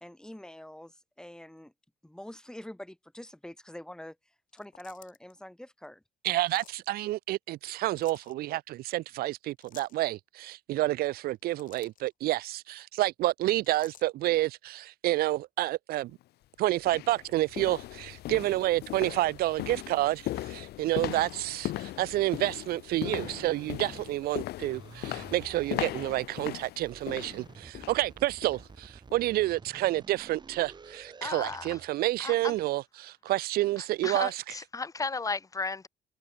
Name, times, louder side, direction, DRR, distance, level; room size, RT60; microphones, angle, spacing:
voice 1, 0.0-1.7 2.0-4.2 4.5-6.0, left 1 dB, 5° left, 2.5 m, -45 dB
sound 1, 4.5-5.3 6.4-6.8 7.8-8.3 9.6-10.0 11.2-12.1 13.6-14.1, left 11 dB, 50° left, 1.1 m, -53 dB
voice 2, 6.2-16.1 16.6-34.3, right 16 dB, 65° right, 0.4 m, -29 dB
sound 2, 16.1-16.2 16.8-28.1 28.4-28.7 29.1-29.2, left 15 dB, 75° left, 1.5 m, -38 dB
sound 3, 23.0-24.4 24.7-26.3 26.8-32.0, right 5 dB, 25° right, 2.1 m, -50 dB
voice 3, 31.2-31.8 32.2-32.6 33.8-35.9, left 4 dB, 20° left, 1.9 m, -35 dB
cardioid pair, 110°, 17 cm